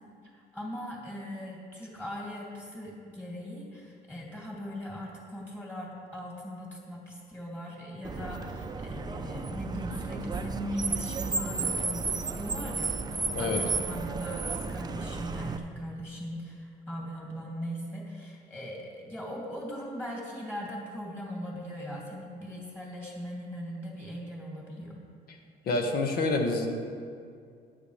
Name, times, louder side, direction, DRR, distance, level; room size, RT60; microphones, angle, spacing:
voice 1, 0.2-12.9 13.4-25.0, equal, 15° left, -4 dB, 2.7 m, -39 dB
Car, 8.0-15.6, right 4 dB, 25° right, 0.6 m, -33 dB
voice 2, 25.6-26.7, left 3 dB, 65° left, 3 dB, 1.6 m, -27 dB
14.5 x 9.8 x 3.3 m, 2.3 s
cardioid pair, 110°, 17 cm